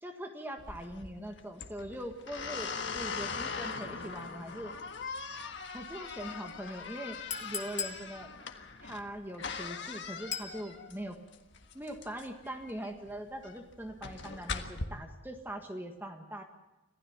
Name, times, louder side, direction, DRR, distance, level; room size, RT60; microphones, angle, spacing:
voice 1, 0.0-4.7 5.7-8.3 8.8-11.2 11.7-16.4, right 1 dB, 10° right, 4 dB, 1.6 m, -42 dB
sound 1, 0.6-14.8, left 5 dB, 60° left, 1.6 m, -41 dB
Chink clink, 7.3-8.0 10.3-10.6, left 7 dB, 35° left, 1.6 m, -37 dB
26.5 x 15.5 x 7.2 m, 1.0 s
head